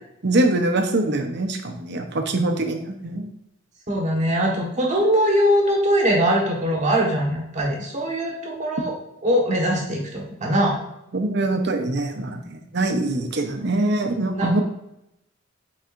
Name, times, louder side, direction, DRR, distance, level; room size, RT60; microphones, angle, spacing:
voice 1, 0.2-3.3 11.1-14.6, right 2 dB, 60° right, 5 dB, 0.8 m, -23 dB
voice 2, 3.9-8.9 9.2-10.8 14.4-14.6, equal, 40° right, -1 dB, 1.4 m, -21 dB
9.0 x 4.1 x 2.5 m, 0.84 s
head